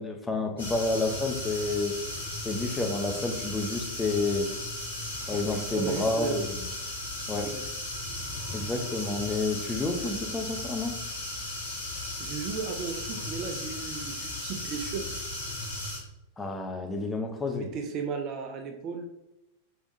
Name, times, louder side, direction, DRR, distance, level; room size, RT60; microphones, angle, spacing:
voice 1, 0.0-2.0 2.4-4.5 5.3-6.6 7.3-7.5 8.5-10.9 16.4-17.7, left 3 dB, 10° left, 4 dB, 0.6 m, -30 dB
sound 1, 0.6-16.0, left 1 dB, 70° left, 1.5 m, -36 dB
voice 2, 5.3-6.5 7.4-7.7 12.2-15.1 17.5-19.1, right 5 dB, 35° right, 5 dB, 0.5 m, -35 dB
4.7 x 3.4 x 2.6 m, 0.92 s
figure-of-eight pair, 90°, 0 cm